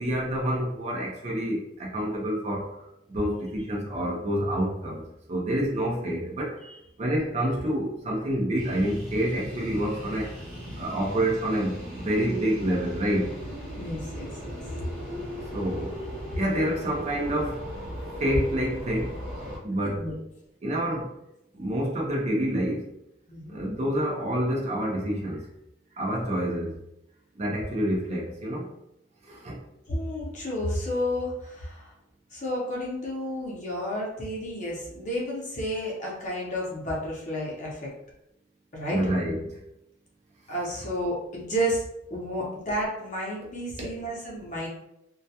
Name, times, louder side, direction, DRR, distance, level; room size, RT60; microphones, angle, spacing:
voice 1, 0.0-2.7 3.1-5.0 5.3-6.6 7.0-10.3 10.8-13.3 15.5-16.0 16.4-17.6 18.2-19.2 19.6-20.1 20.6-21.1 21.5-22.9 23.5-25.5 26.0-26.7 27.4-28.7 29.2-29.6 38.9-39.6 43.8-43.9, right 1 dB, 35° right, -2 dB, 0.4 m, -28 dB
sound 1, 8.6-19.6, equal, 50° right, 0.9 m, -37 dB
voice 2, 13.8-14.6 19.8-20.1 23.3-23.6 29.9-31.9 32.3-37.9 38.7-39.0 40.5-41.8 42.1-44.7, equal, 40° left, -4 dB, 0.7 m, -31 dB
2.2 x 2.1 x 2.7 m, 0.82 s
head